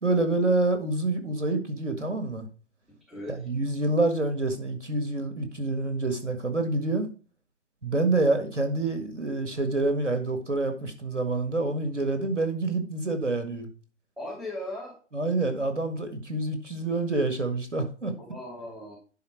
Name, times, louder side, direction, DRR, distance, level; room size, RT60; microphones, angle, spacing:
voice 1, 0.0-2.5 3.3-7.1 7.8-13.7 15.1-18.1, right 2 dB, 85° right, 6 dB, 1.8 m, -27 dB
voice 2, 3.1-3.4 14.2-14.9 18.2-19.0, left 1 dB, ahead, -4 dB, 2.6 m, -37 dB
10.5 x 4.3 x 4.6 m, 0.38 s
figure-of-eight pair, 125°, 36 cm